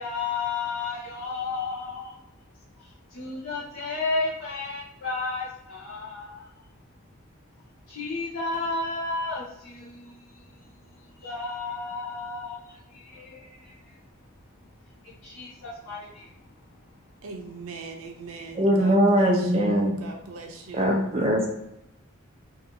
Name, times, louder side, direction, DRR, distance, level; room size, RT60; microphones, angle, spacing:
voice 1, 0.0-2.2 2.8-6.5 7.9-10.4 10.9-13.8 15.0-16.3, left 3 dB, 65° left, -8 dB, 0.6 m, -33 dB
voice 2, 17.2-21.1, right 4 dB, 90° right, 2 dB, 0.5 m, -41 dB
voice 3, 18.6-19.9 20.7-21.5, equal, 30° right, 0 dB, 0.4 m, -21 dB
2.7 x 2.3 x 2.6 m, 0.84 s
head